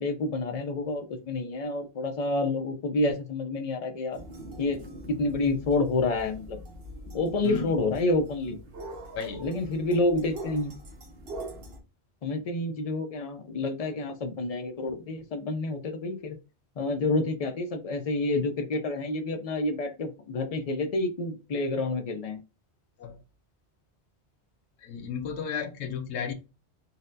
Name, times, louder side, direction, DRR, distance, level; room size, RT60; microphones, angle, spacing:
voice 1, 0.0-4.2 4.6-4.8 5.1-6.6 7.1-8.6 9.4-10.7 12.2-16.4 16.8-22.4, left 2 dB, 55° left, 0.4 m, -28 dB
sound 1, 4.1-11.8, right 1 dB, 60° right, 1.1 m, -43 dB
voice 2, 7.4-7.8 9.1-9.5 23.0-23.2 24.8-26.3, left 6 dB, 80° left, 0.9 m, -34 dB
4.0 x 2.1 x 2.6 m
omnidirectional pair, 1.1 m